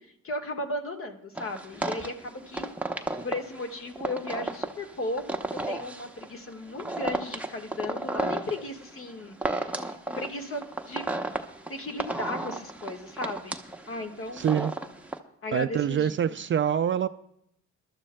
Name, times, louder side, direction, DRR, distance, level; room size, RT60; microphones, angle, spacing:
voice 1, 0.2-2.7 3.2-5.2 5.5-11.0 11.7-13.6 13.9-14.4 15.4-16.2, left 2 dB, 45° left, 4 dB, 1.5 m, -35 dB
sound 1, 1.4-15.2, right 2 dB, 5° right, 0.8 m, -34 dB
voice 2, 14.3-14.7 15.5-17.1, right 9 dB, 40° right, 13 dB, 0.4 m, -25 dB
23.5 x 12.5 x 2.2 m, 0.74 s
cardioid pair, 90°, 30 cm